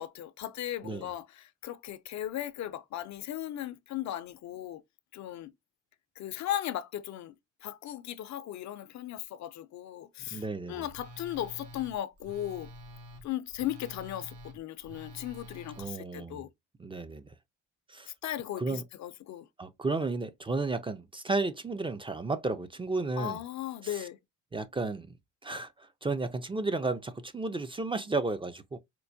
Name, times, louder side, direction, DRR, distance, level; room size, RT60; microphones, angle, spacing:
voice 1, 0.0-4.8 5.1-5.5 6.2-7.3 7.6-12.7 13.2-16.5 18.1-19.5 23.2-24.2, left 12 dB, 65° left, 0.5 m, -37 dB
voice 2, 10.3-10.9 15.8-16.4 16.8-17.3 17.9-18.1 18.6-18.8 19.6-23.4 23.8-24.0 24.5-25.1 25.4-28.8, right 3 dB, 20° right, 0.4 m, -33 dB
Telephone, 10.9-15.8, equal, 80° right, 1.0 m, -48 dB
4.4 x 2.1 x 2.5 m
cardioid pair, 90°, 30 cm